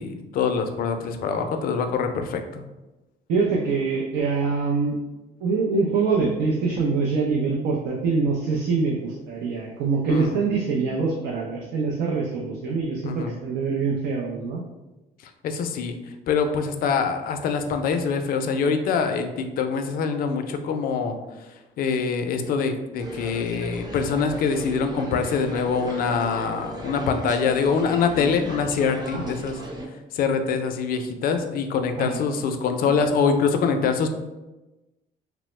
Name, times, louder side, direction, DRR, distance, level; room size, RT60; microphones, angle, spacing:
voice 1, 0.0-2.6 10.1-10.4 13.0-13.3 15.4-16.0 16.3-21.2 21.8-29.6 30.1-34.1, left 5 dB, 60° left, 7 dB, 0.4 m, -24 dB
voice 2, 3.3-5.0 5.4-14.6 29.1-29.3 32.0-32.2, right 4 dB, 80° right, -1 dB, 0.5 m, -24 dB
sound 1, 23.0-29.9, right 1 dB, 25° right, 0.5 m, -36 dB
2.9 x 2.0 x 3.1 m, 1.1 s
cardioid pair, 110°, 17 cm